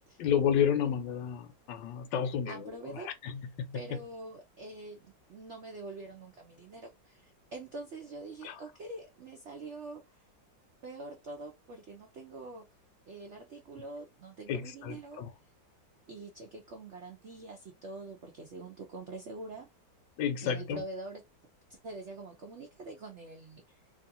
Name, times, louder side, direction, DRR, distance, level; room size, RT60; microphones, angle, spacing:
voice 1, 0.2-2.6 3.0-3.3 8.4-8.5 14.5-15.3 20.2-20.8, left 8 dB, 75° left, 1.2 m, -30 dB
voice 2, 2.5-3.4 3.7-10.2 10.8-12.7 13.1-15.2 16.1-19.7 20.4-21.2 21.7-23.8, right 2 dB, 85° right, 0.6 m, -45 dB
3.0 x 2.4 x 2.6 m
omnidirectional pair, 2.0 m